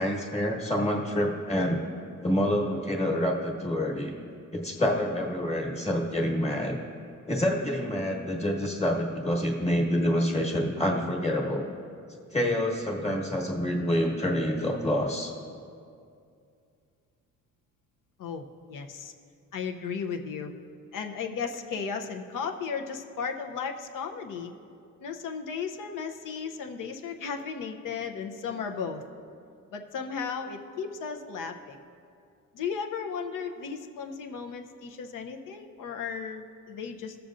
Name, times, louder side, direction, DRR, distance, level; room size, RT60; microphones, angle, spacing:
voice 1, 0.0-1.8 2.2-4.1 4.5-6.8 7.3-11.6 12.3-15.3, left 1 dB, 20° left, -1 dB, 1.3 m, -27 dB
voice 2, 18.2-19.1 19.5-20.5 20.9-24.5 25.0-29.0 29.7-31.8 32.5-37.2, left 6 dB, 80° left, 5 dB, 0.8 m, -35 dB
16.0 x 6.9 x 2.5 m, 2.4 s
cardioid pair, 120°, 31 cm